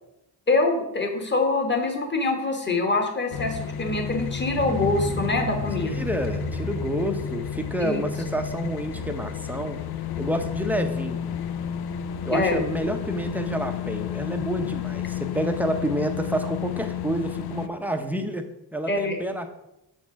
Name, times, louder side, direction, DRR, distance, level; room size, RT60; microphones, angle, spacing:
voice 1, 0.5-5.9 7.8-8.0 12.3-12.6 18.9-19.2, left 3 dB, 25° left, 3 dB, 1.3 m, -24 dB
sound 1, 3.3-17.7, left 9 dB, 60° left, 0.5 m, -32 dB
Motorcycle, 4.6-9.8, right 4 dB, 55° right, 0.8 m, -36 dB
voice 2, 5.8-9.8 10.2-11.4 12.2-19.5, right 1 dB, 5° right, 5 dB, 0.6 m, -29 dB
7.2 x 4.4 x 5.7 m, 0.86 s
cardioid pair, 135°, 44 cm